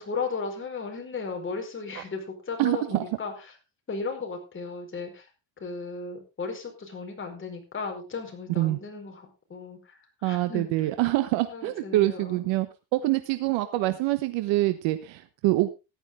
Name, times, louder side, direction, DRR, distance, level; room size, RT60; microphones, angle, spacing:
voice 1, 0.0-3.5 3.9-5.3 5.6-10.9 11.4-12.4, left 4 dB, 25° left, 2 dB, 4.9 m, -35 dB
voice 2, 2.6-3.0 8.6-8.8 10.2-12.7 12.9-15.7, right 17 dB, 75° right, 10 dB, 1.2 m, -25 dB
14.5 x 11.0 x 3.7 m, 0.28 s
cardioid pair, 125°, 44 cm